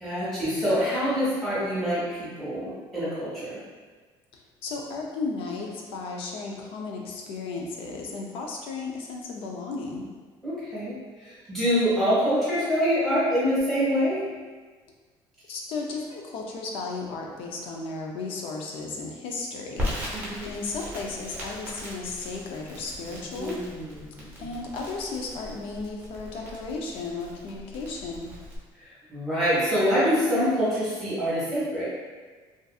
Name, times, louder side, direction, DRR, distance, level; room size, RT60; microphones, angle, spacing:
voice 1, 0.0-3.6 10.4-14.2 20.1-20.5 23.3-24.5 28.8-31.9, equal, ahead, -11 dB, 1.1 m, -26 dB
voice 2, 4.3-10.1 15.5-19.9 20.4-23.6 24.4-28.3, left 3 dB, 70° left, 0 dB, 0.5 m, -34 dB
Crackle, 19.8-28.6, left 1 dB, 15° right, 0.7 m, -38 dB
2.5 x 2.5 x 2.3 m, 1.4 s
cardioid pair, 145°, 10 cm